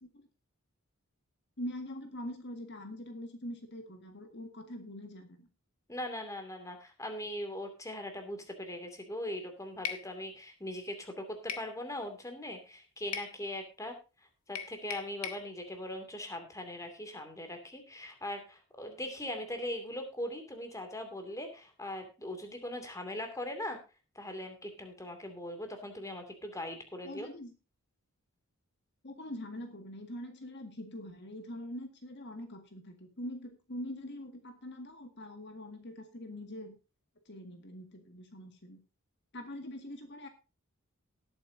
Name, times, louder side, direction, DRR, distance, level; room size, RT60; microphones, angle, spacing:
voice 1, 1.6-5.5 27.0-27.5 29.0-36.7 37.2-38.8 39.3-40.3, left 1 dB, 50° left, 6 dB, 1.8 m, -43 dB
voice 2, 5.9-13.9 14.5-23.8 24.1-27.3, left 1 dB, 15° left, 6 dB, 2.5 m, -40 dB
sound 1, 9.8-10.1 11.5-11.7 13.1-13.3 14.5-15.4, left 8 dB, 90° left, 1.6 m, -38 dB
18.5 x 8.8 x 2.7 m, 0.30 s
head